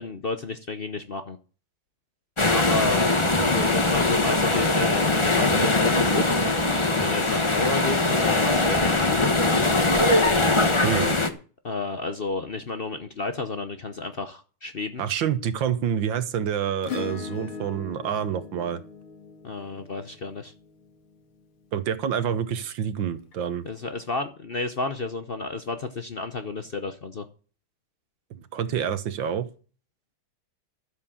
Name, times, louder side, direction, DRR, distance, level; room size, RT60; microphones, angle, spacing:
voice 1, 0.0-1.4 2.5-3.2 3.4-6.4 7.0-9.3 11.6-15.0 19.4-20.5 23.6-27.3, left 3 dB, 65° left, 8 dB, 0.5 m, -31 dB
sound 1, 2.4-11.3, left 2 dB, 20° left, 0.8 m, -21 dB
voice 2, 10.8-11.2 15.0-18.8 21.7-23.6 28.5-29.5, right 8 dB, 65° right, 12 dB, 1.7 m, -27 dB
Acoustic guitar / Strum, 16.8-21.4 23.3-23.4, left 6 dB, 90° left, 2.5 m, -39 dB
12.5 x 7.6 x 7.1 m, 0.38 s
omnidirectional pair, 2.3 m